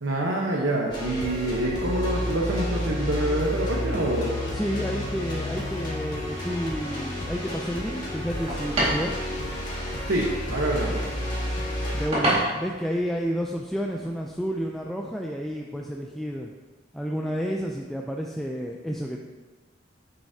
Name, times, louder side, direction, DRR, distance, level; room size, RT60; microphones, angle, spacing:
voice 1, 0.0-4.3 10.1-11.0, right 1 dB, 80° right, -2 dB, 1.1 m, -26 dB
sound 1, 0.9-12.1, left 1 dB, 25° left, 1.7 m, -31 dB
sound 2, 4.0-14.9, right 1 dB, 30° right, 2.0 m, -34 dB
voice 2, 4.5-9.1 11.9-16.5 16.9-19.2, equal, ahead, 0 dB, 0.3 m, -30 dB
9.5 x 8.0 x 2.8 m, 1.3 s
head